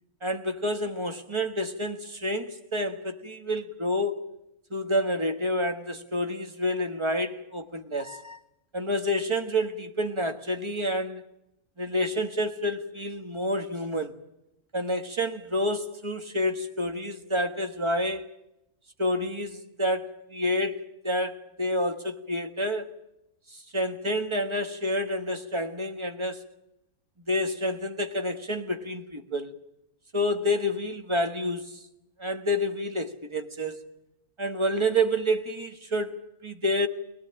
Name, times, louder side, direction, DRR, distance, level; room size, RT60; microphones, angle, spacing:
voice 1, 0.2-4.2 4.7-8.4 8.7-11.2 11.8-14.2 14.7-18.3 19.0-22.9 23.5-26.4 27.3-29.5 30.1-31.8 32.2-33.9 34.4-36.9, equal, 20° right, 1.5 m, -29 dB
23.0 x 19.5 x 8.8 m
omnidirectional pair, 1.5 m